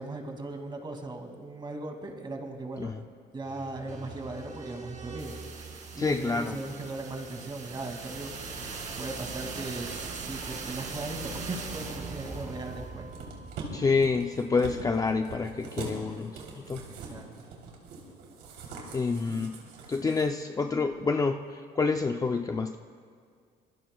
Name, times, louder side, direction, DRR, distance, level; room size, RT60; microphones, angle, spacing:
voice 1, 0.0-2.9 3.3-8.7 9.0-13.1 17.0-17.3 19.3-19.5, right 2 dB, 25° right, 3 dB, 2.5 m, -38 dB
sound 1, 3.4-15.3, right 4 dB, 45° right, 2.5 m, -41 dB
voice 2, 6.0-6.6 13.7-16.8 18.9-19.6 19.9-22.8, left 4 dB, 20° left, 5 dB, 0.5 m, -28 dB
sound 2, 13.1-20.3 20.6-20.7, right 4 dB, 90° right, 3.5 m, -43 dB
26.0 x 22.5 x 2.4 m, 2.1 s
cardioid pair, 110°, 17 cm